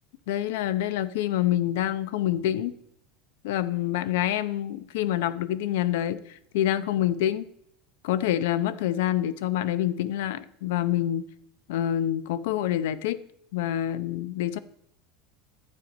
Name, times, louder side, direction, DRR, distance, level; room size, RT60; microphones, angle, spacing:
voice 1, 0.3-2.7 3.4-7.5 8.0-11.2 11.7-13.2 13.5-14.6, left 12 dB, 80° left, 15 dB, 0.7 m, -27 dB
11.5 x 7.6 x 5.2 m, 0.71 s
supercardioid pair, 150°, 0 cm